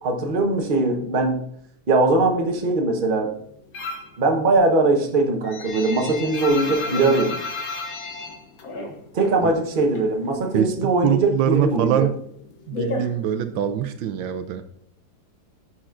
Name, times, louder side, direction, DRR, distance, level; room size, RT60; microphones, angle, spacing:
voice 1, 0.0-1.4 1.9-3.3 4.2-7.4 9.1-12.0, right 2 dB, 35° right, 2 dB, 1.0 m, -21 dB
sound 1, 3.7-4.2 4.5-9.4 9.7-10.7 11.0-13.8, left 3 dB, 55° left, 1.3 m, -32 dB
voice 2, 10.5-12.1 12.7-14.6, right 10 dB, 80° right, 9 dB, 1.3 m, -23 dB
10.0 x 6.0 x 2.5 m, 0.68 s
omnidirectional pair, 2.1 m